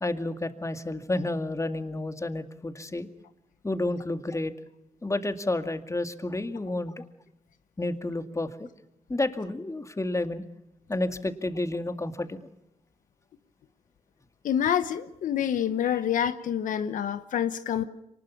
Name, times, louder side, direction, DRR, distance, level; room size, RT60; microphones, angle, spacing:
voice 1, 0.0-3.1 3.6-4.5 5.0-7.0 7.8-8.7 9.1-10.4 10.9-12.5, left 2 dB, 25° left, 9 dB, 2.1 m, -30 dB
voice 2, 14.4-17.8, left 9 dB, 85° left, 11 dB, 1.0 m, -27 dB
24.5 x 20.0 x 7.1 m, 0.86 s
cardioid pair, 60°, 13 cm